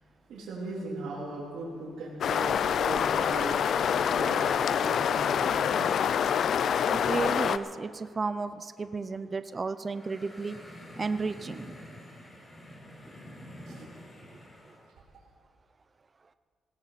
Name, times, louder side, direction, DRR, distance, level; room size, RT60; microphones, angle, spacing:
voice 1, 0.3-6.1 13.6-13.9, right 2 dB, 75° right, -6 dB, 3.4 m, -39 dB
sound 1, 2.2-7.6, left 8 dB, 65° left, 0.5 m, -26 dB
voice 2, 6.9-10.6 11.0-11.9, right 4 dB, 35° right, 11 dB, 0.6 m, -33 dB
sound 2, 9.8-14.9, equal, 30° left, 4.5 m, -48 dB
19.0 x 17.0 x 4.2 m, 2.1 s
supercardioid pair, 70°, 0 cm